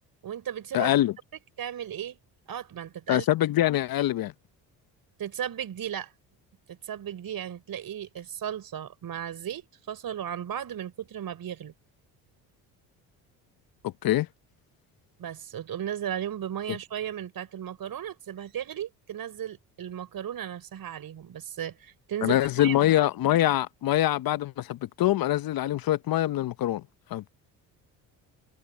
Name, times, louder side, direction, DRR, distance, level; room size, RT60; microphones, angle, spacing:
voice 1, 0.2-0.9 1.6-2.2 2.5-3.3 5.2-6.1 6.7-11.7 15.2-22.8, right 10 dB, 55° right, 5.3 m, -35 dB
voice 2, 0.7-1.1 3.1-4.3 13.8-14.3 22.2-26.8 27.1-27.3, left 13 dB, 55° left, 0.8 m, -24 dB
supercardioid pair, 75°, 42 cm